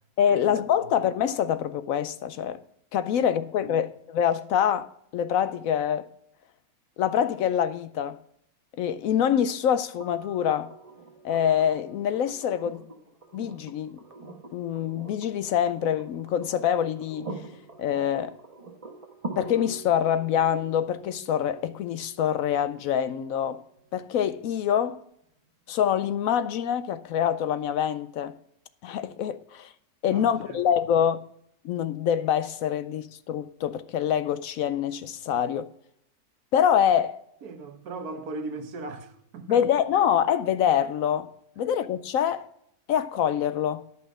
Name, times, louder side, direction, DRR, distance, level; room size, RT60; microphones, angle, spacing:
voice 1, 0.2-2.6 2.9-6.1 7.0-8.2 8.8-10.7 11.2-12.9 13.3-14.0 14.5-17.3 17.8-18.3 19.4-23.6 23.9-25.0 25.7-28.4 28.8-29.7 30.0-31.2 31.6-35.7 36.5-37.2 39.5-41.3 41.6-42.5 42.9-43.8, left 9 dB, 70° left, 0.9 m, -25 dB
sound 1, 10.0-23.9 25.7-25.8, right 3 dB, 25° right, 1.1 m, -44 dB
voice 2, 30.1-30.6 37.4-39.6, right 3 dB, 75° right, 1.5 m, -38 dB
10.5 x 5.6 x 6.1 m
omnidirectional pair, 1.6 m